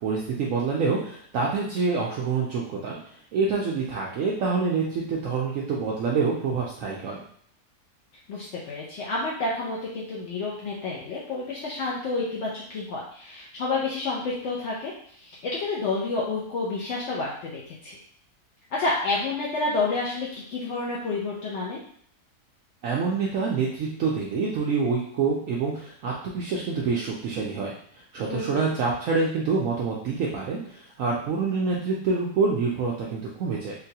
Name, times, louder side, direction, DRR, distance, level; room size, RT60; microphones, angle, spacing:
voice 1, 0.0-7.2 22.8-27.7 28.1-33.7, right 4 dB, 70° right, -3 dB, 0.8 m, -26 dB
voice 2, 8.3-18.0 18.7-21.8 28.3-28.7, left 3 dB, 65° left, -5 dB, 0.7 m, -29 dB
3.9 x 2.2 x 2.7 m, 0.62 s
omnidirectional pair, 1.7 m